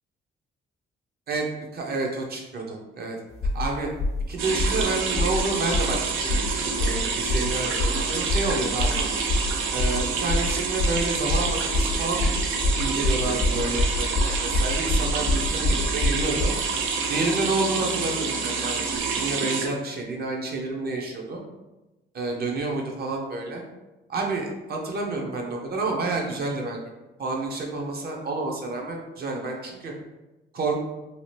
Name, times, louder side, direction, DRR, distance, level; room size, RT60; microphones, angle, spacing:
voice 1, 1.7-3.2 3.5-3.9 4.3-9.1 9.7-12.3 12.8-16.5 17.1-21.4 22.1-23.6 24.1-26.8 27.2-29.9 30.5-30.7, right 3 dB, 50° right, 0 dB, 0.7 m, -29 dB
sound 1, 3.4-3.7 4.0-4.2 4.6-4.8 5.1-5.4 5.7-5.9 6.3-6.5 6.8-7.0 7.3-7.5 7.8-8.0 8.3-8.5 8.8-9.0 9.3-9.5 9.8-10.0 10.3-10.5 10.8-11.0 11.3-16.6, left 2 dB, 35° left, 0.5 m, -25 dB
sound 2, 4.4-19.7, right 5 dB, 90° right, 0.5 m, -28 dB
2.8 x 2.4 x 3.2 m, 1.0 s
cardioid pair, 90°, 20 cm